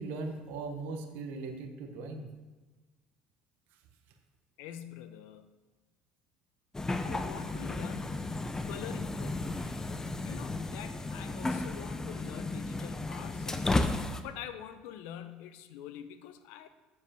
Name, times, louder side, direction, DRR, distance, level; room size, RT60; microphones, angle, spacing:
voice 1, 0.0-2.3, right 3 dB, 75° right, 4 dB, 1.1 m, -39 dB
voice 2, 4.6-5.5 7.0-8.4 8.7-9.8 10.2-16.7, left 10 dB, 75° left, 11 dB, 0.7 m, -45 dB
sound 1, 6.7-14.2, left 2 dB, 15° left, 0.7 m, -34 dB
7.7 x 4.8 x 6.9 m, 1.2 s
supercardioid pair, 85°, 3 cm